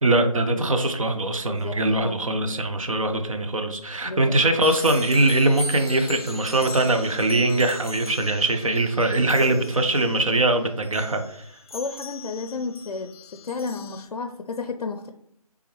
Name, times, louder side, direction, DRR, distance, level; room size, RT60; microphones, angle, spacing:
voice 1, 0.0-11.4, right 2 dB, 60° right, 6 dB, 0.6 m, -22 dB
voice 2, 1.5-2.3 4.0-4.4 11.7-15.1, left 4 dB, 75° left, 6 dB, 0.4 m, -32 dB
sound 1, 4.6-14.0, left 2 dB, 40° left, 0.7 m, -40 dB
3.4 x 3.3 x 3.0 m, 0.70 s
figure-of-eight pair, 175°, 19 cm